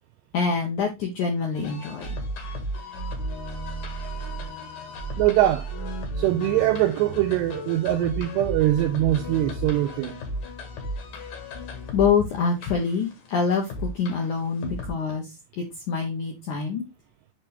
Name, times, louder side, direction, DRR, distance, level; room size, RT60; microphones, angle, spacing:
voice 1, 0.3-2.2 11.9-16.8, left 5 dB, 75° left, 1.8 m, -26 dB
sound 1, 1.5-14.9, equal, 60° left, 2.8 m, -35 dB
voice 2, 5.2-5.7 6.2-10.2, right 14 dB, 85° right, 2.4 m, -22 dB
6.9 x 5.3 x 3.4 m
omnidirectional pair, 5.4 m